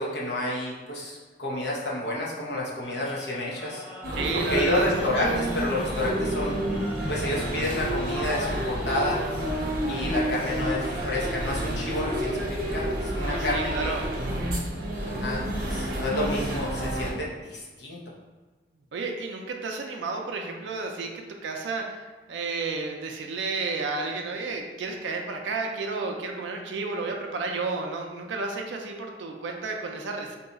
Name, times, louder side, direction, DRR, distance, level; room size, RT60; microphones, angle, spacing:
voice 1, 0.0-3.8 4.3-6.6 7.1-9.2 9.9-13.9 15.0-18.0, left 1 dB, 65° left, -4 dB, 0.8 m, -30 dB
sound 1, 2.8-10.8, left 1 dB, 85° left, 1.2 m, -44 dB
sound 2, 4.0-17.1, right 1 dB, 55° right, 0.7 m, -29 dB
voice 2, 4.1-4.9 13.2-14.0 18.9-30.4, right 3 dB, 85° right, 2 dB, 0.4 m, -32 dB
2.8 x 2.3 x 3.9 m, 1.3 s
head